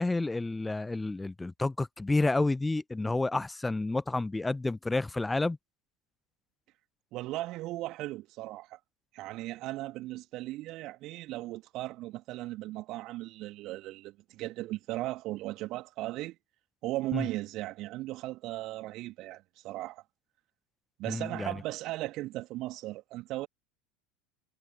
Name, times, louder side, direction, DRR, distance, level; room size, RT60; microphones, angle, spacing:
voice 1, 0.0-5.6 17.1-17.3 21.1-21.5, left 2 dB, 10° left, 0.8 m, -30 dB
voice 2, 7.1-8.8 9.1-16.4 16.8-20.0 21.0-23.5, right 17 dB, 45° right, 2.8 m, -37 dB
figure-of-eight pair, 75°, 0 cm